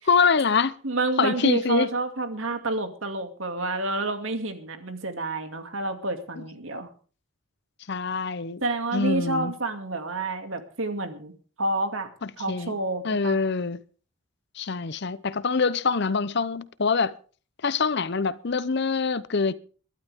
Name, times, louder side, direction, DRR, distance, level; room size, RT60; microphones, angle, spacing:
voice 1, 0.1-0.7 1.2-1.9 6.4-6.5 7.9-8.6 8.9-9.5 12.5-12.7 13.0-13.8 14.6-17.1 17.6-19.5, left 5 dB, 55° left, 0.7 m, -24 dB
voice 2, 0.8-6.9 8.6-11.3 11.6-12.1 12.4-13.4, right 2 dB, 65° right, 2.4 m, -29 dB
22.5 x 12.0 x 3.6 m
head